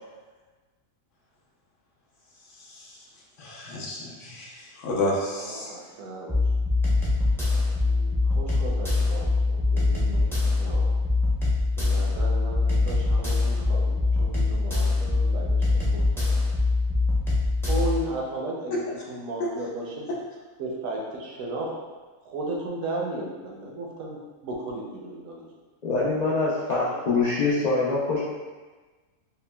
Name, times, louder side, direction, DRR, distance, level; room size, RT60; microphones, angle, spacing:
voice 1, 2.5-3.1 3.4-5.7 19.4-19.5, left 1 dB, 65° left, -4 dB, 1.0 m, -31 dB
voice 2, 5.3-6.4 7.8-10.9 11.8-16.3 17.7-18.8 19.1-20.1 20.6-21.7 22.2-25.4 26.7-27.0, right 2 dB, 75° right, -2 dB, 1.0 m, -35 dB
sound 1, 6.3-18.0, left 3 dB, 5° left, 0.3 m, -23 dB
voice 3, 25.8-28.2, left 3 dB, 85° left, -9 dB, 0.3 m, -24 dB
5.4 x 2.1 x 2.2 m, 1.3 s
omnidirectional pair, 1.5 m